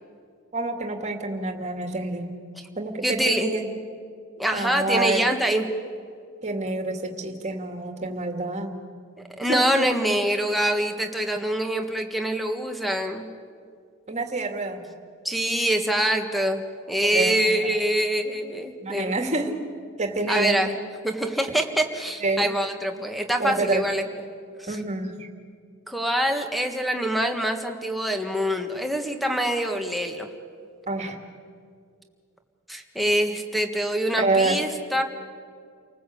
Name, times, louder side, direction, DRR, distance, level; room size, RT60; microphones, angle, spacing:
voice 1, 0.5-2.3 2.8-3.7 4.5-5.2 6.4-8.8 9.4-9.9 14.1-14.8 17.0-17.4 17.6-17.7 18.8-19.5 20.0-20.6 22.2-22.5 23.4-23.8 24.7-25.3 30.9-31.2 34.2-34.6, right 2 dB, 30° right, 4 dB, 2.3 m, -27 dB
voice 2, 3.0-3.5 4.4-5.7 9.4-13.3 15.2-16.6 16.9-19.2 20.3-20.7 21.0-24.0 24.6-24.8 25.9-30.3 32.7-35.0, right 1 dB, ahead, 5 dB, 1.7 m, -25 dB
30.0 x 19.5 x 8.6 m, 2.2 s
head